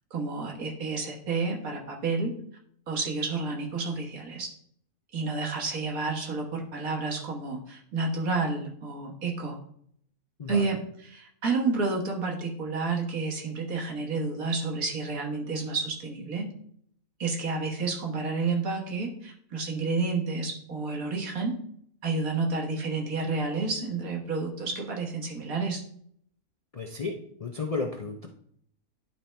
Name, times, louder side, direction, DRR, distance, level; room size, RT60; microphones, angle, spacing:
voice 1, 0.1-2.3 2.9-4.5 5.1-9.5 10.5-10.8 11.0-16.5 17.2-21.6 22.0-25.8, right 3 dB, 70° right, 0 dB, 1.8 m, -30 dB
voice 2, 10.4-10.8 26.7-28.3, left 4 dB, 45° left, 2 dB, 0.4 m, -33 dB
10.5 x 4.3 x 3.3 m, 0.66 s
omnidirectional pair, 1.5 m